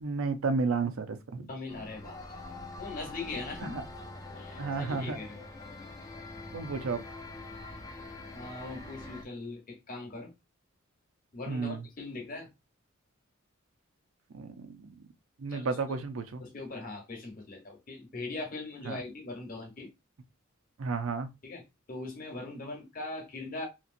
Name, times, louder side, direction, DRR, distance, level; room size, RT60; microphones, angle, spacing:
voice 1, 0.0-1.5 3.7-3.8 4.6-5.2 6.5-7.0 11.5-11.8 14.3-14.7 15.4-16.4 18.9-19.0 20.8-21.3, right 4 dB, 80° right, 0.5 m, -32 dB
voice 2, 1.5-2.2 2.7-3.8 4.4-5.4 8.3-10.3 11.3-12.5 15.5-15.7 15.9-16.1 16.4-19.9 21.4-21.6 21.9-23.7, left 2 dB, 40° left, 1.0 m, -40 dB
sound 1, 1.7-9.2, left 2 dB, 15° left, 0.4 m, -44 dB
2.9 x 2.8 x 2.5 m
head